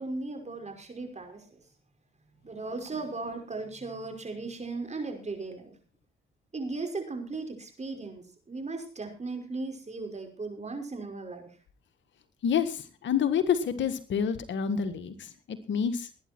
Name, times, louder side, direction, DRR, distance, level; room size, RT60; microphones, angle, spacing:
voice 1, 0.0-1.6 2.4-5.7 6.5-11.5, right 3 dB, 35° right, 5 dB, 5.5 m, -37 dB
voice 2, 12.4-16.1, left 7 dB, 70° left, 10 dB, 1.7 m, -28 dB
20.0 x 9.9 x 4.5 m, 0.35 s
supercardioid pair, 55°, 20 cm